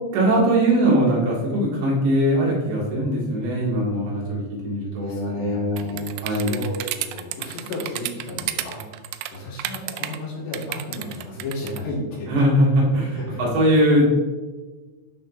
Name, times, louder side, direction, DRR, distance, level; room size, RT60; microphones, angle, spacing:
voice 1, 0.1-6.6 12.3-13.2 13.5-14.1, right 1 dB, 70° right, -5 dB, 4.4 m, -21 dB
voice 2, 5.0-9.0 9.3-12.3 13.0-13.4, left 1 dB, 70° left, -6 dB, 4.9 m, -34 dB
sound 1, 5.8-10.2 10.5-11.8, right 14 dB, 85° right, 2.3 m, -31 dB
12.5 x 5.7 x 3.2 m, 1.3 s
omnidirectional pair, 5.3 m